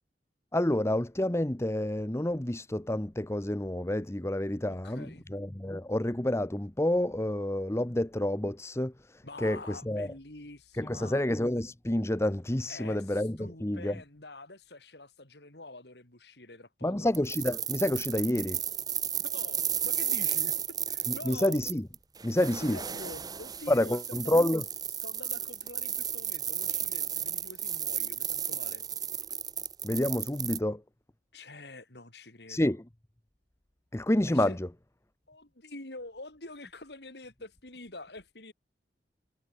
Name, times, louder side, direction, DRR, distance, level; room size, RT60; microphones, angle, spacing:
voice 1, 0.5-10.1 10.8-14.0 16.8-18.6 21.2-21.8 22.2-22.8 23.7-24.6 29.8-30.8 32.5-32.8 33.9-34.7, left 1 dB, 15° left, 0.9 m, -29 dB
voice 2, 4.7-5.2 9.2-11.2 12.7-17.1 19.2-20.5 20.9-21.6 22.4-24.0 25.0-28.8 31.3-32.7 34.3-34.6 35.3-38.5, left 2 dB, 70° left, 4.2 m, -46 dB
sound 1, 17.1-30.6, right 8 dB, 20° right, 1.0 m, -33 dB
head